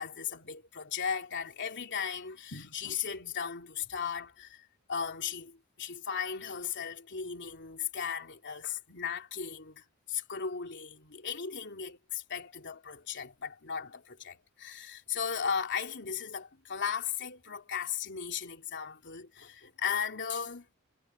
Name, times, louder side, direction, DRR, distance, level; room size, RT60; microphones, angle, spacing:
voice 1, 0.0-20.8, left 7 dB, 55° left, 3.1 m, -36 dB
head